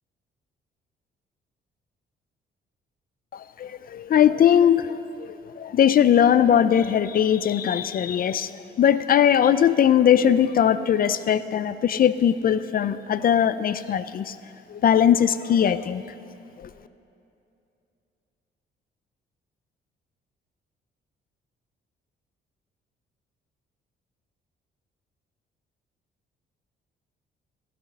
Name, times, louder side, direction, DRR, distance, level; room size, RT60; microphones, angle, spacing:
voice 1, 3.3-8.5 8.8-14.3 14.7-16.0 16.6-16.7, left 9 dB, 50° left, 15 dB, 0.4 m, -20 dB
15.5 x 6.7 x 6.2 m, 2.7 s
cardioid pair, 90°, 20 cm